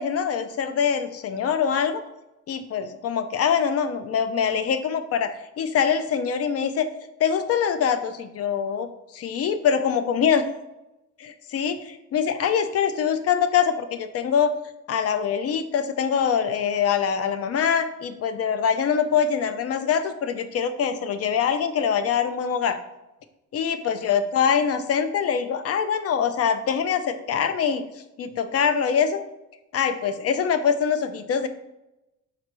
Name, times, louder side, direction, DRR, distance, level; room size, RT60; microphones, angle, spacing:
voice 1, 0.0-2.0 2.5-6.9 7.2-8.9 9.1-10.5 11.2-14.5 14.9-22.8 23.5-27.8 28.2-29.2 29.7-31.5, left 7 dB, 50° left, 10 dB, 0.4 m, -24 dB
4.8 x 3.3 x 3.0 m, 0.95 s
cardioid pair, 90°, 30 cm